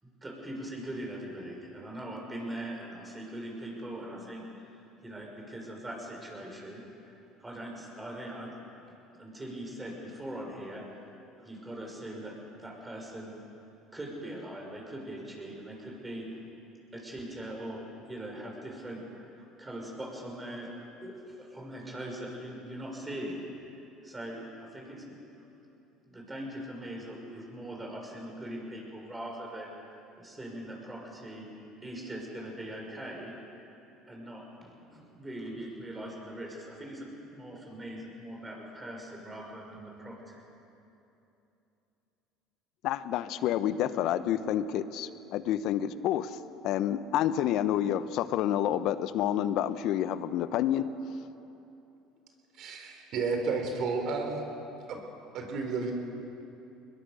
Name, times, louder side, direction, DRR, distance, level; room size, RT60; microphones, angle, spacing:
voice 1, 0.0-8.6 9.2-13.4 13.9-16.4 16.9-20.7 21.0-25.2 25.6-25.7 26.0-29.8 30.2-31.5 31.8-33.7 34.1-40.5, right 1 dB, 15° right, 0 dB, 6.6 m, -41 dB
voice 2, 42.8-50.9, left 11 dB, 65° left, 13 dB, 1.0 m, -29 dB
voice 3, 52.6-54.4 54.9-55.0 55.3-55.9, right 4 dB, 60° right, 4 dB, 4.1 m, -32 dB
22.5 x 21.0 x 6.9 m, 2.9 s
supercardioid pair, 85°, 0 cm